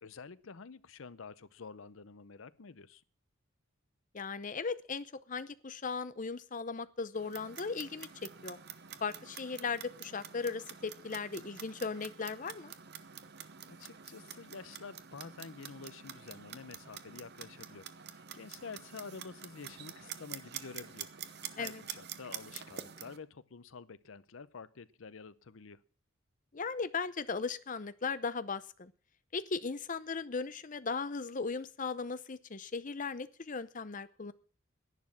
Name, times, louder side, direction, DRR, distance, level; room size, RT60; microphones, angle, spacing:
voice 1, 0.0-3.0 13.7-25.8, left 5 dB, 80° left, 17 dB, 0.7 m, -49 dB
voice 2, 4.1-8.6 9.0-12.7 21.6-21.8 26.5-28.9 29.3-34.3, left 4 dB, 40° left, 14 dB, 0.7 m, -37 dB
Clock, 7.1-23.2, right 9 dB, 55° right, 0.9 m, -47 dB
11.0 x 9.7 x 7.5 m, 0.43 s
head